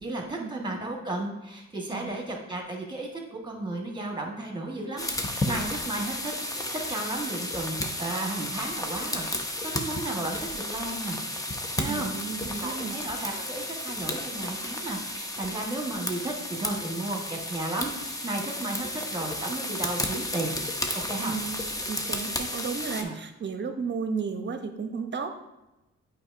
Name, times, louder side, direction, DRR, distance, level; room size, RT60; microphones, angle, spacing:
voice 1, 0.0-11.2 11.8-20.5 21.1-21.3 23.0-23.1, right 2 dB, 15° right, 1 dB, 1.5 m, -34 dB
sound 1, 5.0-23.0, left 1 dB, 10° left, 0.7 m, -33 dB
voice 2, 11.9-13.0 21.2-21.6 21.9-25.3, right 5 dB, 40° right, 7 dB, 0.8 m, -33 dB
7.7 x 4.7 x 2.6 m, 0.99 s
cardioid pair, 75°, 29 cm